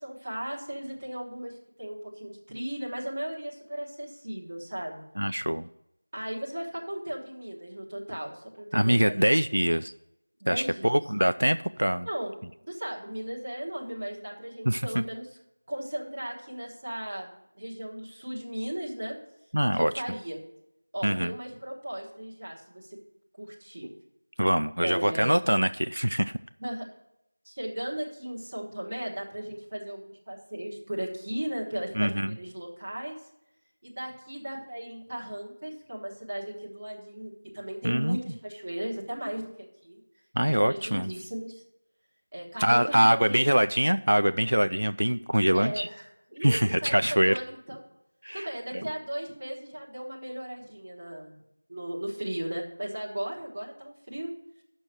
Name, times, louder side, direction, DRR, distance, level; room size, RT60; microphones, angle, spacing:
voice 1, 0.0-5.0 6.1-9.3 10.4-11.0 12.0-12.4 12.7-15.3 15.7-19.2 19.7-20.4 20.9-23.0 23.4-23.9 24.8-25.3 26.6-26.8 27.4-33.2 33.8-40.0 40.5-41.6 42.3-43.4 45.5-46.9 47.2-47.8 48.3-51.4 51.7-54.3, right 1 dB, 15° right, -5 dB, 1.1 m, -36 dB
voice 2, 5.2-5.7 8.7-9.9 10.5-12.1 14.7-15.0 19.5-19.9 21.0-21.3 24.4-26.3 31.9-32.4 37.8-38.2 40.3-41.1 42.6-45.9 46.4-47.4 48.2-48.5, equal, 75° right, 10 dB, 0.3 m, -24 dB
7.5 x 6.1 x 6.5 m, 0.83 s
figure-of-eight pair, 180°, 0 cm